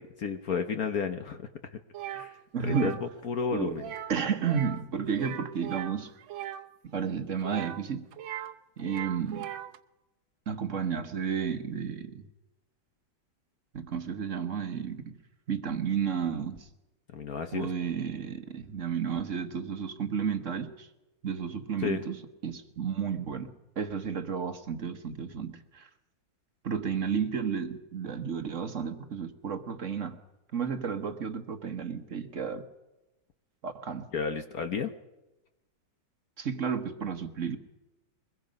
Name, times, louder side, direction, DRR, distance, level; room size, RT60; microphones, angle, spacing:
voice 1, 0.0-1.5 2.1-2.4 2.6-3.8 17.1-17.7 21.8-22.0 34.1-34.9, left 6 dB, 55° left, 7 dB, 1.3 m, -32 dB
sound 1, 1.9-2.3 2.6-3.0 3.8-4.2 4.4-4.8 5.1-6.6 7.4-8.5 8.8-9.8, right 11 dB, 75° right, 1.6 m, -39 dB
voice 2, 2.5-2.9 3.5-3.8 4.1-6.1 6.9-8.1 8.8-9.5 10.5-12.3 13.7-15.2 15.5-16.7 17.5-20.9 21.2-25.9 26.6-30.2 30.5-32.6 33.6-34.1 36.4-37.6, right 7 dB, 45° right, 8 dB, 1.4 m, -32 dB
23.0 x 21.5 x 5.3 m, 1.0 s
omnidirectional pair, 2.2 m